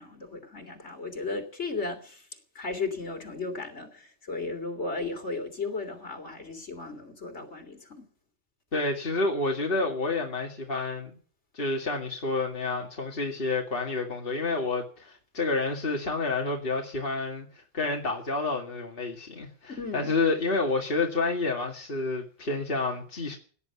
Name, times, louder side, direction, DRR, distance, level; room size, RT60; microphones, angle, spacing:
voice 1, 0.0-2.2 2.6-8.1 19.8-20.1, left 3 dB, 70° left, 3.5 m, -35 dB
voice 2, 8.7-11.1 11.5-23.4, left 3 dB, 50° left, 2.4 m, -29 dB
17.5 x 11.0 x 7.0 m
omnidirectional pair, 1.2 m